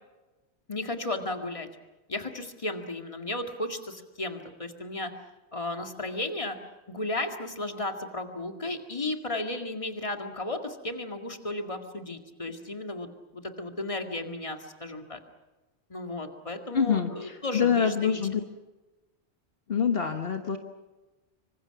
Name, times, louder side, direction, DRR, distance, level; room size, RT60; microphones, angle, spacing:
voice 1, 0.7-1.7 2.1-5.1 5.5-6.6 6.9-13.1 13.3-15.2 15.9-18.2, left 2 dB, 30° left, 4 dB, 2.1 m, -34 dB
voice 2, 16.7-18.4 19.7-20.6, left 7 dB, 60° left, 5 dB, 1.6 m, -26 dB
26.5 x 25.0 x 5.9 m, 1.1 s
omnidirectional pair, 1.1 m